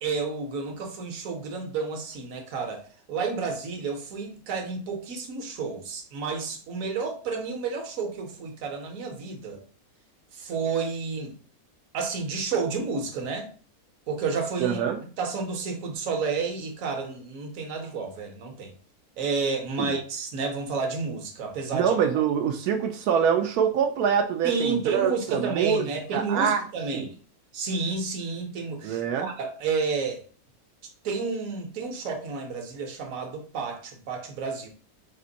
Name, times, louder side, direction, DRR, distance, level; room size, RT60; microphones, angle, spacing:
voice 1, 0.0-9.6 10.3-11.3 11.9-13.5 14.1-14.8 15.2-18.7 19.2-21.9 24.4-27.1 27.5-30.3 31.0-34.7, right 4 dB, 65° right, 1.2 m, -31 dB
voice 2, 14.6-15.0 19.8-20.0 21.7-26.6 26.9-27.0 28.8-29.3, right 7 dB, 85° right, 1.1 m, -25 dB
4.3 x 2.5 x 3.9 m
omnidirectional pair, 1.6 m